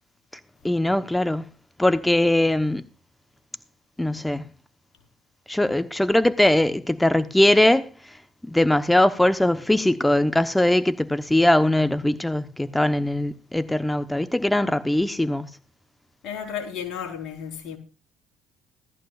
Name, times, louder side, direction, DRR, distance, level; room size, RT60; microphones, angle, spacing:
voice 1, 0.6-1.4 1.8-2.8 4.0-4.5 5.5-7.9 8.5-15.5, left 1 dB, 10° left, 1.0 m, -21 dB
voice 2, 16.2-17.8, left 8 dB, 65° left, 4.4 m, -33 dB
18.0 x 14.0 x 2.5 m
supercardioid pair, 65°, 0 cm